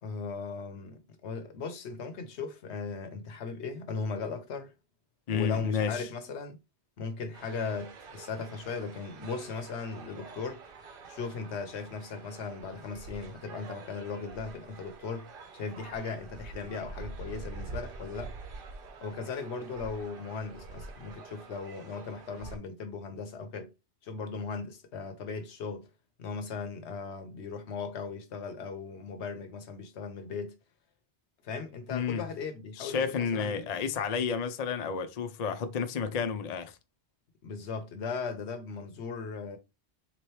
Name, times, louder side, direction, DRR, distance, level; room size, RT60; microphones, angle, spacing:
voice 1, 0.0-4.7 5.3-6.6 7.0-10.6 11.1-18.3 19.0-23.7 24.0-25.9 26.2-30.5 31.4-33.6 37.4-39.6, left 4 dB, 75° left, 1.0 m, -38 dB
voice 2, 5.3-6.1 31.9-32.2 32.8-36.8, left 6 dB, 55° left, 0.4 m, -31 dB
sound 1, 7.3-22.6, right 3 dB, 55° right, 0.8 m, -46 dB
3.7 x 3.0 x 3.1 m
omnidirectional pair, 1.1 m